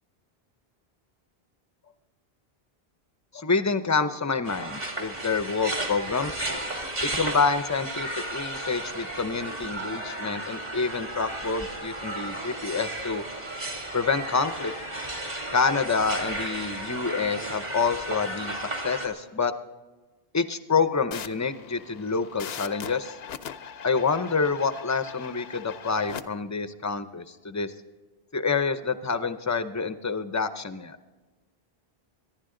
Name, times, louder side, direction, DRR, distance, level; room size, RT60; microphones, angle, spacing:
voice 1, 3.3-6.4 7.0-13.2 13.9-14.7 15.5-19.5 20.3-23.2 23.8-27.7 28.3-31.0, left 4 dB, 20° left, 11 dB, 0.6 m, -27 dB
sound 1, 4.5-19.1, right 1 dB, 45° right, 2.4 m, -34 dB
sound 2, 21.1-26.2, left 8 dB, 75° left, 0.9 m, -40 dB
24.5 x 11.0 x 3.8 m, 1.3 s
omnidirectional pair, 1.0 m